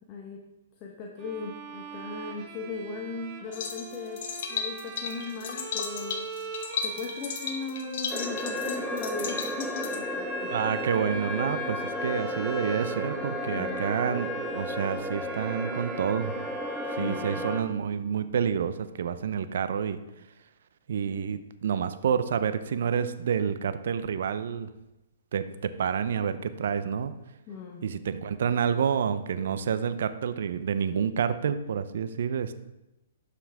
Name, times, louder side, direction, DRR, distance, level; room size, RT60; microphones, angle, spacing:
voice 1, 0.1-0.4 0.8-4.2 4.5-10.5 13.5-13.8 17.0-17.5 27.5-27.9, left 4 dB, 30° left, 0 dB, 1.2 m, -38 dB
Bowed string instrument, 1.2-18.4, right 5 dB, 30° right, 1.3 m, -42 dB
sound 1, 3.5-10.0, left 6 dB, 55° left, 1.3 m, -35 dB
sound 2, 8.1-17.6, left 1 dB, ahead, 0.6 m, -33 dB
voice 2, 10.5-16.3 16.9-20.0 20.9-24.7 25.3-27.1 27.8-32.5, right 7 dB, 65° right, 12 dB, 0.6 m, -28 dB
11.5 x 5.7 x 3.6 m, 0.94 s
hypercardioid pair, 135°, 0 cm